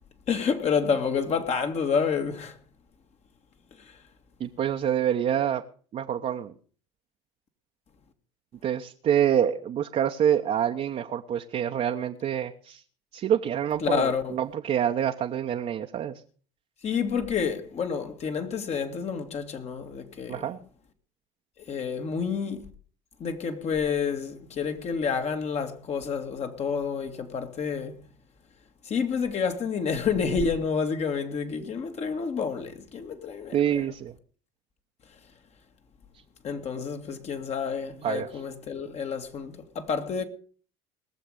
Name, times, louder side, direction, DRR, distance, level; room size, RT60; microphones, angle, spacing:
voice 1, 0.3-2.6 13.8-14.4 16.8-20.5 21.7-22.6 23.2-28.0 28.9-33.8 36.4-40.2, left 6 dB, 45° left, 2.1 m, -29 dB
voice 2, 4.4-5.6 5.9-6.5 8.6-12.8 13.1-16.2 20.3-20.6 33.5-34.1 38.0-38.3, right 9 dB, 45° right, 1.0 m, -26 dB
19.5 x 7.2 x 6.6 m
hypercardioid pair, 70°, 15 cm